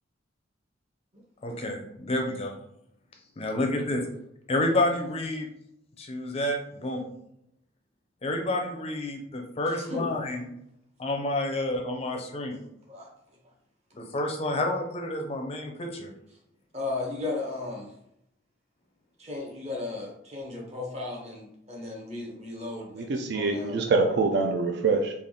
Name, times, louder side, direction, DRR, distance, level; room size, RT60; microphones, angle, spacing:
voice 1, 1.4-2.6 3.4-4.0 4.5-5.5 6.0-7.0 8.2-10.4 11.0-12.5 14.0-16.1, left 1 dB, 30° left, 3 dB, 0.5 m, -29 dB
voice 2, 9.6-10.1 12.9-13.1 16.7-17.9 19.2-23.8, left 3 dB, 35° right, -2 dB, 1.0 m, -35 dB
voice 3, 22.9-25.1, right 3 dB, 60° right, 4 dB, 0.4 m, -25 dB
3.5 x 2.4 x 3.6 m, 0.79 s
head